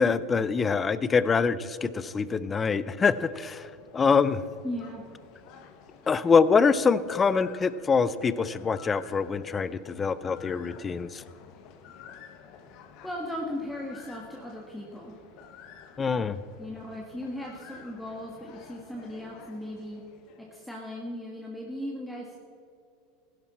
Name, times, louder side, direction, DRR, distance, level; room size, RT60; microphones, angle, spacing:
voice 1, 0.0-4.4 6.1-11.2 16.0-16.4, left 5 dB, 20° left, 16 dB, 0.5 m, -25 dB
sound 1, 2.4-20.7, left 7 dB, 55° left, 1.4 m, -51 dB
voice 2, 4.6-5.0 13.0-15.1 16.6-20.0 20.4-22.4, left 1 dB, ahead, -2 dB, 1.6 m, -37 dB
15.5 x 11.0 x 4.3 m, 2.5 s
supercardioid pair, 130°, 0 cm